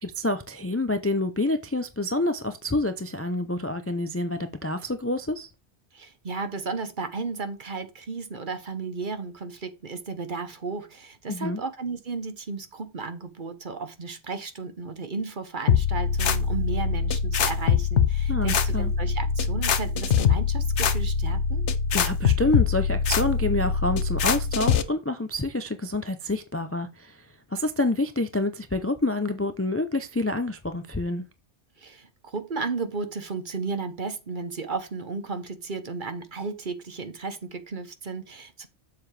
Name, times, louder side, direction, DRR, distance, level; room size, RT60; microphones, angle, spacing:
voice 1, 0.0-5.5 11.3-11.6 18.3-18.9 21.9-27.3 27.5-31.2, left 2 dB, 15° left, 0.5 m, -27 dB
voice 2, 5.9-21.6 31.8-38.7, right 4 dB, 45° right, 1.2 m, -34 dB
sound 1, 15.7-24.8, left 6 dB, 85° left, 1.1 m, -23 dB
7.6 x 7.0 x 3.3 m
omnidirectional pair, 1.2 m